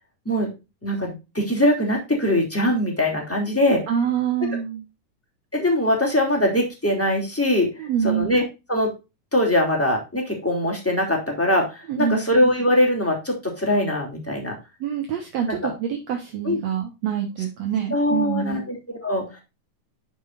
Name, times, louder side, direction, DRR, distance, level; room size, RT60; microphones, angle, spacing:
voice 1, 0.8-3.8 5.5-8.4 8.7-8.9 9.3-14.5 15.6-15.7 16.4-16.6 17.9-19.4, left 1 dB, 5° left, 0 dB, 2.8 m, -22 dB
voice 2, 3.9-4.8 7.8-8.4 11.9-12.2 14.8-18.6, right 8 dB, 65° right, 3 dB, 2.2 m, -26 dB
11.0 x 6.3 x 2.5 m, 0.26 s
omnidirectional pair, 3.6 m